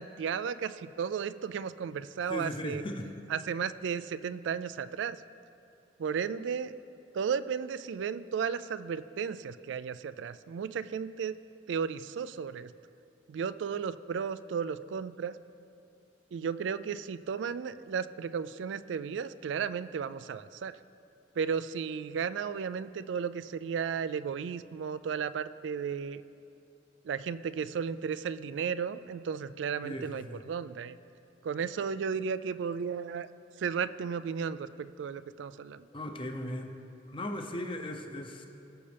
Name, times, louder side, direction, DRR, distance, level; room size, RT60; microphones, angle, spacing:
voice 1, 0.0-2.8 3.3-5.2 6.0-6.7 7.1-11.4 11.7-12.7 13.3-15.4 16.3-20.8 21.4-26.2 27.0-31.0 31.4-33.3 33.6-35.9, right 6 dB, 75° right, 15 dB, 0.3 m, -34 dB
voice 2, 2.3-3.1 29.8-30.4 35.9-36.8 37.1-38.5, left 1 dB, 30° left, 5 dB, 0.7 m, -37 dB
18.5 x 6.8 x 3.4 m, 2.6 s
head